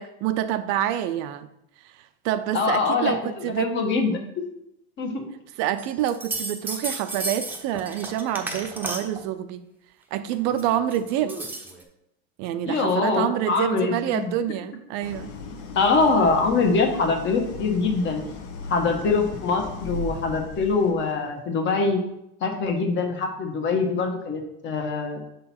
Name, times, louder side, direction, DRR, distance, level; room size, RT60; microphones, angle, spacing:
voice 1, 0.0-1.5 2.2-3.7 5.6-9.6 10.1-11.3 12.4-15.3, right 11 dB, 60° right, 10 dB, 0.5 m, -27 dB
voice 2, 2.5-4.1 5.0-5.3 12.6-14.3 15.7-18.2 18.7-22.0 22.4-25.2, left 4 dB, 35° left, 4 dB, 1.2 m, -23 dB
sound 1, 5.8-9.2 10.3-11.8, right 2 dB, 5° right, 0.7 m, -33 dB
Idling, 15.0-21.1, left 3 dB, 85° left, 1.1 m, -37 dB
7.0 x 3.9 x 4.3 m, 0.82 s
supercardioid pair, 130°, 31 cm